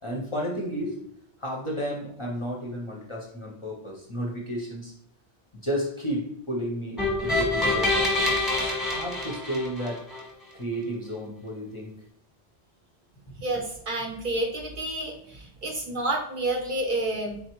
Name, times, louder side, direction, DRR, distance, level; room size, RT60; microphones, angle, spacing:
voice 1, 0.0-1.1 1.4-4.9 5.5-10.0 10.5-11.9 13.3-13.4, equal, 35° left, -2 dB, 0.5 m, -33 dB
sound 1, 7.0-10.2, left 2 dB, ahead, 0.9 m, -26 dB
voice 2, 13.4-17.4, right 2 dB, 55° right, 2 dB, 0.6 m, -29 dB
3.9 x 3.3 x 2.9 m, 0.66 s
omnidirectional pair, 1.1 m